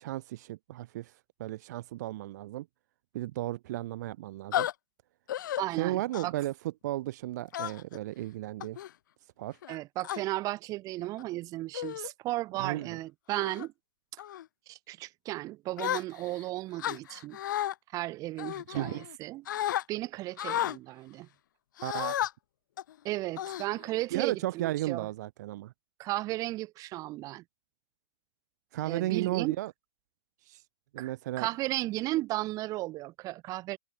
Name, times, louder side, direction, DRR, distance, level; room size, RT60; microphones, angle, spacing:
voice 1, 0.0-2.7 3.1-4.7 5.8-8.8 9.2-9.6 12.6-13.0 18.7-19.0 21.8-22.3 24.1-25.7 28.7-29.7 30.4-30.6 30.9-31.5, right 15 dB, 45° right, 1.5 m, -34 dB
sound 1, 4.5-4.7 5.3-5.6 6.1-6.4 7.5-8.0 8.6-8.9 9.6-10.2 11.0-11.2 11.7-12.1 12.6-12.8 13.3-13.7 14.2-14.4 15.8-16.4 16.8-17.7 18.4-19.2 19.5-19.8 20.4-20.8 21.8-22.3 22.8-22.9 23.4-24.0, left 12 dB, 55° left, 0.8 m, -33 dB
voice 2, 5.6-6.3 9.7-13.7 14.7-17.4 17.9-19.4 19.9-21.3 23.0-25.1 26.0-27.4 28.8-29.6 31.0-31.1 31.4-33.8, right 17 dB, 30° right, 3.0 m, -34 dB
figure-of-eight pair, 120°, 12 cm